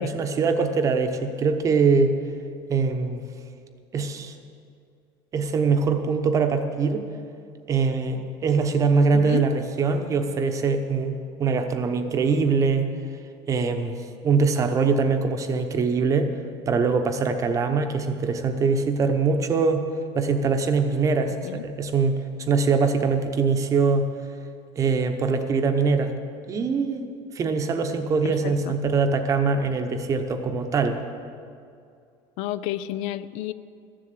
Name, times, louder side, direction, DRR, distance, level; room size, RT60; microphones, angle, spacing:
voice 1, 0.0-2.1 2.7-3.2 3.9-4.3 5.3-7.1 7.7-12.9 13.5-16.3 16.7-19.9 20.1-24.1 24.8-26.2 26.5-31.0, right 4 dB, 25° right, 7 dB, 0.9 m, -23 dB
voice 2, 9.1-9.5 21.4-21.7 28.2-28.8 32.4-33.5, left 14 dB, 65° left, 15 dB, 0.4 m, -31 dB
13.5 x 7.5 x 8.4 m, 2.4 s
cardioid pair, 155°, 12 cm